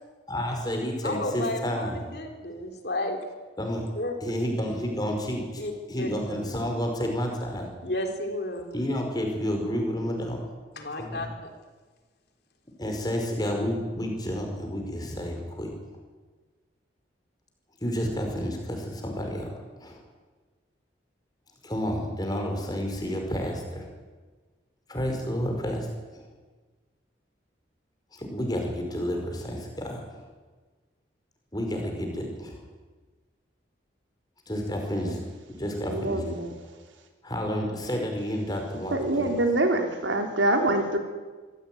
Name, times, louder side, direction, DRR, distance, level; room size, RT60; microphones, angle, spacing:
voice 1, 0.3-2.0 3.6-3.9 4.2-5.6 5.9-7.7 8.7-10.4 11.0-11.3 12.8-15.7 17.8-19.5 19.8-20.0 21.6-23.9 24.9-26.3 28.1-30.3 31.5-32.7 34.5-36.2 37.2-39.3, equal, 20° left, 2 dB, 5.3 m, -30 dB
voice 2, 1.0-3.2 4.0-4.1 5.6-5.7 6.0-6.1 7.8-8.7 10.7-11.5, left 1 dB, 55° left, 4 dB, 3.6 m, -32 dB
voice 3, 35.9-36.5 38.9-41.0, right 1 dB, 85° right, 4 dB, 3.8 m, -25 dB
25.5 x 16.5 x 9.4 m, 1.3 s
head